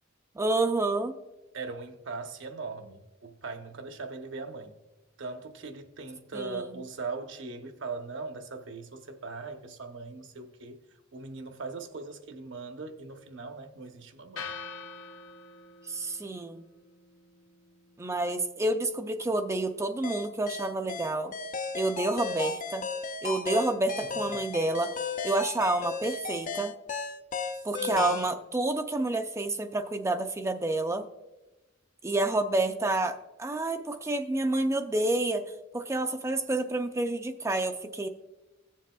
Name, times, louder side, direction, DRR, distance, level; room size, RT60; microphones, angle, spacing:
voice 1, 0.4-1.2 6.3-6.7 15.8-16.6 18.0-21.3 21.7-22.9 23.2-24.9 25.2-26.7 27.6-31.1 32.0-35.4 35.7-38.1, right 2 dB, 15° right, 0.4 m, -29 dB
voice 2, 1.5-4.8 5.2-10.8 11.1-14.5 24.0-24.4 27.5-28.2, right 3 dB, 70° right, 0.9 m, -40 dB
sound 1, 14.4-22.5, left 5 dB, 85° left, 1.0 m, -48 dB
sound 2, 20.0-28.3, left 5 dB, 40° left, 0.5 m, -35 dB
17.0 x 7.4 x 2.3 m
head